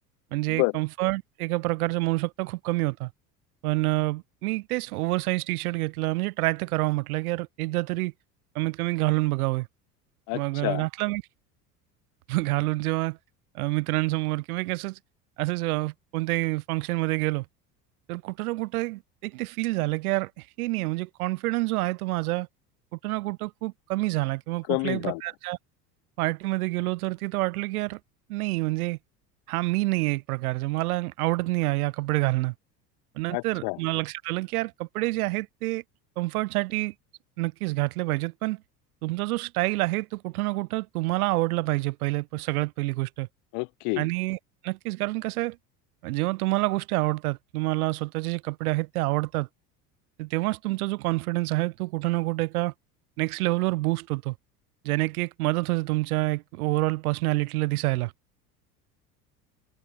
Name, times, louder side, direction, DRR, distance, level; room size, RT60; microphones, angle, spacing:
voice 1, 0.3-3.1 3.6-8.1 8.5-9.7 10.3-11.2 12.3-13.2 13.5-15.0 15.4-17.4 18.1-22.5 23.0-25.6 26.2-28.0 28.3-29.0 29.5-32.5 33.1-35.8 36.2-36.9 37.4-38.6 39.0-43.3 44.0-44.4 44.6-45.6 46.0-49.5 50.2-52.7 53.2-54.3 54.8-58.1, right 20 dB, 65° right, 0.7 m, -27 dB
voice 2, 10.3-10.8 24.7-25.2 33.3-33.8 43.5-44.1, left 33 dB, 50° left, 0.8 m, -28 dB
figure-of-eight pair, 70°, 48 cm